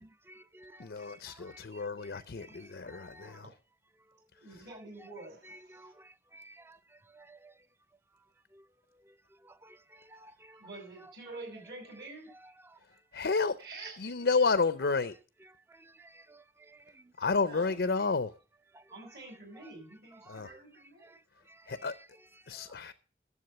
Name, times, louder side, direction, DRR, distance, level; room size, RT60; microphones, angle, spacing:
voice 1, 0.0-1.2 1.5-1.6 2.9-3.3 5.8-5.9 6.3-6.8 7.2-7.5 10.1-10.3 16.3-16.4, right 1 dB, 15° right, 0.4 m, -54 dB
voice 2, 0.8-3.4 13.1-13.6 14.0-15.2 17.2-18.3 20.3-20.5 21.7-21.9 22.5-22.9, left 4 dB, 80° left, 0.6 m, -30 dB
voice 3, 4.4-5.9 10.2-12.3 12.9-13.0 13.6-14.1 17.4-18.1 18.9-21.2, right 2 dB, 70° right, 6.3 m, -48 dB
11.0 x 7.4 x 6.7 m
head